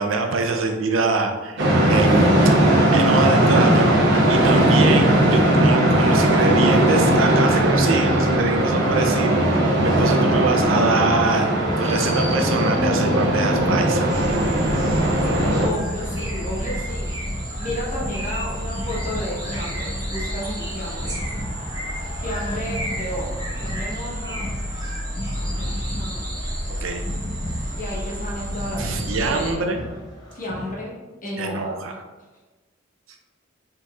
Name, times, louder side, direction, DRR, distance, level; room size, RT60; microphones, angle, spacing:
voice 1, 0.0-14.1 26.7-27.0 28.8-29.8 31.4-31.9, right 3 dB, 75° right, 4 dB, 0.5 m, -24 dB
sound 1, 1.6-15.7, right 1 dB, 60° right, 1.0 m, -18 dB
sound 2, 11.7-30.7, equal, 20° left, 0.9 m, -36 dB
sound 3, 14.1-29.5, equal, 20° right, 0.8 m, -30 dB
voice 2, 15.6-21.2 22.2-24.5 25.4-26.3 27.8-29.7 30.3-30.9 31.2-31.7, left 1 dB, 40° left, -4 dB, 1.1 m, -32 dB
4.4 x 3.8 x 2.4 m, 1.2 s
head